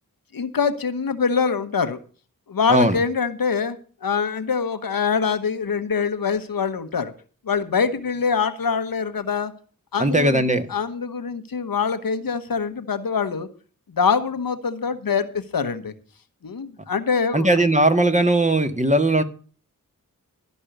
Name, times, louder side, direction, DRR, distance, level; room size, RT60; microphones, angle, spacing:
voice 1, 0.3-2.0 2.5-7.1 7.4-9.5 9.9-10.4 10.7-13.5 13.9-15.9 16.4-17.5, left 5 dB, 75° left, 9 dB, 1.1 m, -24 dB
voice 2, 10.0-10.6 17.3-19.2, right 1 dB, 20° right, 7 dB, 1.7 m, -18 dB
13.0 x 5.4 x 9.1 m, 0.40 s
cardioid pair, 45°, 34 cm